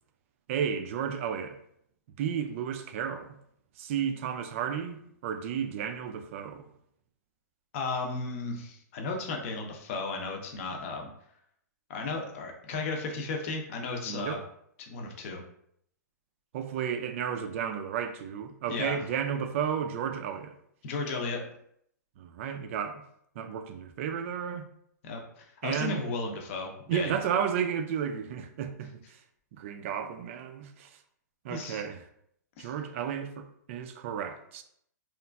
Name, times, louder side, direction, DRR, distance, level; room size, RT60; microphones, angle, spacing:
voice 1, 0.5-1.6 2.2-3.4 3.8-6.7 14.0-14.4 16.5-20.5 22.2-23.0 23.4-24.7 25.6-26.1 26.9-29.2 29.5-31.0 31.4-32.0 32.6-34.6, right 8 dB, 45° right, 0.3 m, -33 dB
voice 2, 7.7-11.1 11.9-14.4 14.8-15.4 18.7-19.0 20.8-21.4 25.0-27.1 31.5-31.8 32.6-32.7, left 3 dB, 45° left, 0.6 m, -34 dB
2.9 x 2.4 x 2.2 m
hypercardioid pair, 135°, 10 cm